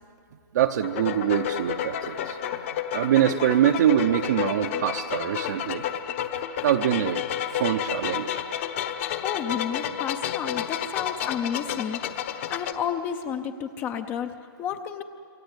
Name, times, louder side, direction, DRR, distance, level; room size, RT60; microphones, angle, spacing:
voice 1, 0.5-2.4 2.9-5.8 6.6-7.2 7.5-8.4, right 10 dB, 45° right, 4 dB, 0.8 m, -24 dB
sound 1, 0.8-12.7, left 10 dB, 30° left, 1.0 m, -31 dB
voice 2, 9.2-15.0, left 8 dB, 15° left, 9 dB, 0.6 m, -31 dB
27.5 x 24.5 x 8.2 m, 2.6 s
hypercardioid pair, 170°, 13 cm